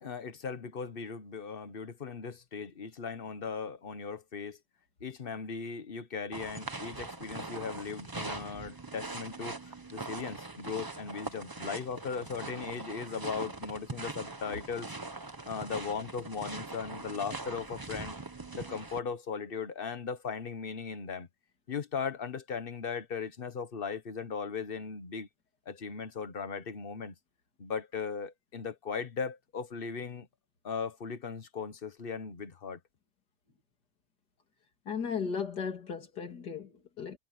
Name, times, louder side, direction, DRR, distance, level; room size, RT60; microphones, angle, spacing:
voice 1, 0.0-4.6 5.0-14.9 15.5-18.2 18.5-21.3 21.7-25.3 25.7-27.1 27.6-30.3 30.6-32.8, left 5 dB, 35° left, 1.1 m, -38 dB
sound 1, 6.3-19.0, right 3 dB, 25° right, 0.5 m, -42 dB
voice 2, 34.9-37.2, left 6 dB, 55° left, 3.5 m, -36 dB
omnidirectional pair, 2.1 m